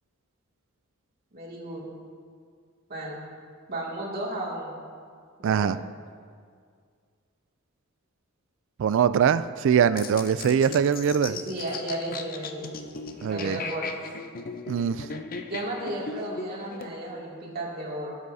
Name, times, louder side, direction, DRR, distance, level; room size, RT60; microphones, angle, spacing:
voice 1, 1.3-1.9 2.9-3.2 3.7-4.7 5.4-5.7 11.2-12.7 13.3-14.0 15.5-18.2, right 1 dB, 50° right, -4 dB, 2.4 m, -34 dB
voice 2, 5.4-5.8 8.8-11.4 13.2-13.6 14.7-15.1, right 7 dB, 65° right, 14 dB, 0.3 m, -22 dB
sound 1, 10.0-16.9, left 4 dB, 45° left, 0.6 m, -38 dB
19.0 x 8.0 x 2.7 m, 2.1 s
head